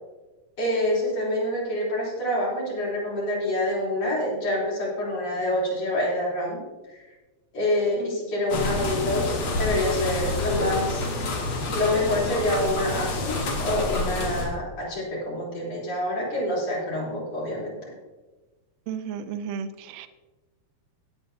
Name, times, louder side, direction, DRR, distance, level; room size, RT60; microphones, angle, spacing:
voice 1, 0.6-6.6 7.5-11.1 11.7-17.8, left 1 dB, 55° left, -6 dB, 4.7 m, -27 dB
sound 1, 8.5-14.5, left 2 dB, 80° left, 3.2 m, -28 dB
voice 2, 18.9-20.1, right 7 dB, 75° right, 9 dB, 1.6 m, -33 dB
17.5 x 8.5 x 2.7 m, 1.2 s
omnidirectional pair, 3.5 m